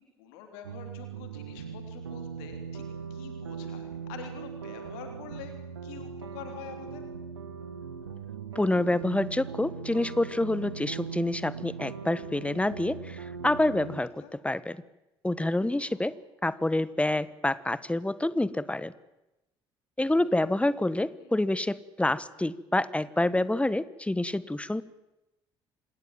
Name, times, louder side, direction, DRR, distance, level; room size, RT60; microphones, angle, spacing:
voice 1, 0.0-2.8 3.1-5.5 5.8-7.0 14.2-14.3 15.7-16.1 21.2-21.3, left 8 dB, 70° left, 5 dB, 3.4 m, -46 dB
sound 1, 0.6-14.0, right 6 dB, 80° right, 1.4 m, -40 dB
voice 2, 8.5-14.8 15.2-16.1 16.4-18.9 20.0-24.8, left 1 dB, 10° left, 17 dB, 1.3 m, -27 dB
27.0 x 20.5 x 7.5 m, 0.97 s
figure-of-eight pair, 50°, 13 cm